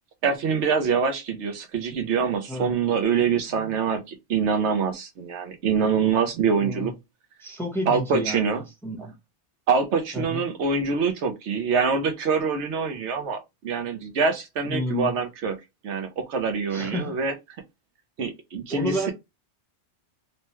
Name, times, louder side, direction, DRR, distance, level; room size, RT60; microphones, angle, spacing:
voice 1, 0.2-6.9 7.9-8.6 9.7-15.6 15.8-17.3 18.2-19.1, right 5 dB, 80° right, 1.0 m, -25 dB
voice 2, 6.6-6.9 7.4-9.1 10.1-10.5 14.6-15.1 16.7-17.2 18.7-19.1, equal, ahead, 0.7 m, -31 dB
3.1 x 2.2 x 3.0 m
omnidirectional pair, 1.2 m